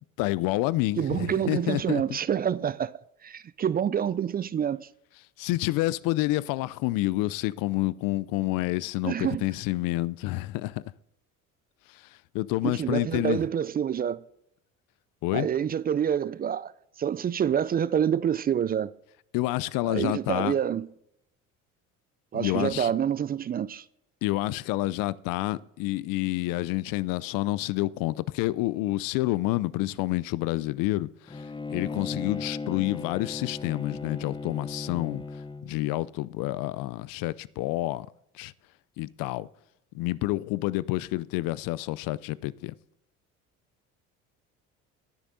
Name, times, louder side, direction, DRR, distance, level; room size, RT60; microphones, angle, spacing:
voice 1, 0.2-2.0 5.4-10.8 11.9-13.4 15.2-15.5 19.3-20.5 22.3-22.9 24.2-35.2 35.6-38.1 38.3-38.5 39.0-39.5 39.9-42.7, left 18 dB, 60° left, 0.5 m, -28 dB
voice 2, 1.0-2.9 3.2-4.9 9.0-9.5 12.6-14.2 15.3-16.7 17.0-18.9 19.9-20.9 22.3-23.8, right 8 dB, 25° right, 0.4 m, -27 dB
Bowed string instrument, 31.3-35.9, left 3 dB, 10° left, 0.9 m, -37 dB
18.5 x 9.9 x 2.7 m
hypercardioid pair, 60°, 39 cm